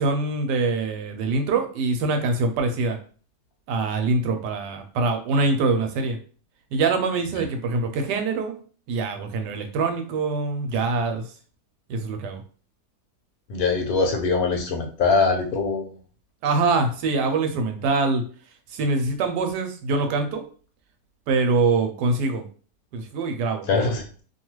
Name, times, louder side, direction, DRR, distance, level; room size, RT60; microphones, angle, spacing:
voice 1, 0.0-3.0 3.7-6.2 6.7-8.6 8.9-11.2 11.9-12.4 16.4-18.2 18.7-20.4 21.3-22.5 22.9-23.7, right 3 dB, 85° right, 6 dB, 1.2 m, -24 dB
voice 2, 13.5-15.9 23.7-24.2, left 4 dB, 70° left, 2 dB, 1.1 m, -22 dB
2.8 x 2.3 x 3.0 m, 0.40 s
omnidirectional pair, 1.8 m